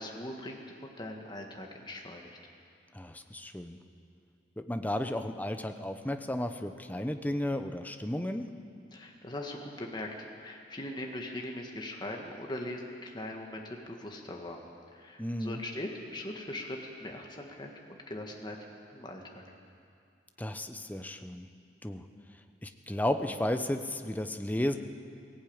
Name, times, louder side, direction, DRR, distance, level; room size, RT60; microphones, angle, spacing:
voice 1, 0.0-2.4 8.9-14.6 14.9-18.6 18.9-19.4, left 1 dB, 25° left, 1 dB, 1.7 m, -41 dB
voice 2, 2.9-3.8 4.6-8.4 15.2-15.6 20.4-21.5 21.8-22.0 22.6-24.8, left 1 dB, 10° left, 7 dB, 0.8 m, -33 dB
18.5 x 17.5 x 8.8 m, 2.4 s
head